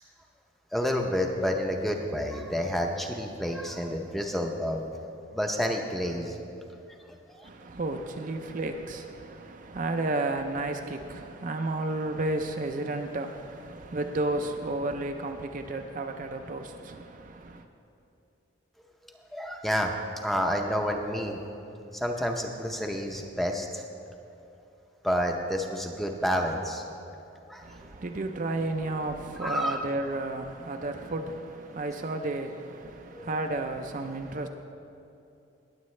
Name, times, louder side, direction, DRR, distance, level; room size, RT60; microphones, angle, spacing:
voice 1, 0.7-4.8 5.3-6.4 7.4-7.5 19.3-19.9 20.2-21.4 21.9-23.8 25.0-26.8 27.5-27.6 29.4-29.8 33.1-33.4, equal, ahead, 0.6 m, -29 dB
voice 2, 7.4-17.7 27.6-34.5, right 2 dB, 40° right, 0.5 m, -32 dB
19.0 x 8.0 x 3.2 m
head